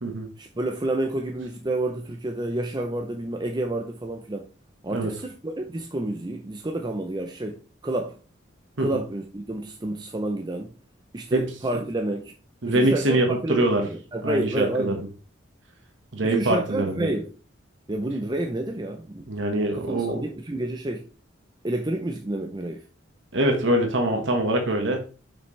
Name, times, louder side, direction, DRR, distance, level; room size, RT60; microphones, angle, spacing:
voice 1, 0.4-4.5 4.8-8.2 8.8-10.8 11.1-12.3 12.6-15.1 16.2-17.3 17.9-19.3 19.7-21.1 21.6-22.8, right 1 dB, 20° right, 0.6 m, -29 dB
voice 2, 12.6-13.8 14.2-14.9 16.1-17.1 19.3-20.2 23.3-25.0, right 1 dB, 65° right, 1.6 m, -23 dB
6.9 x 6.3 x 3.3 m
head